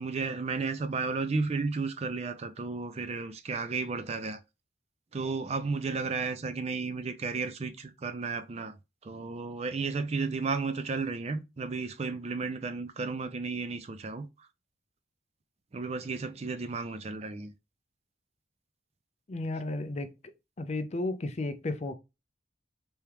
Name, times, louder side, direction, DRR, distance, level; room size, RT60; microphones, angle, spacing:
voice 1, 0.0-4.4 5.1-8.7 9.0-14.5 15.7-17.5, right 4 dB, 35° right, 0.4 m, -33 dB
voice 2, 19.3-20.1 20.6-21.9, left 2 dB, 35° left, 0.4 m, -33 dB
3.5 x 3.3 x 2.9 m
head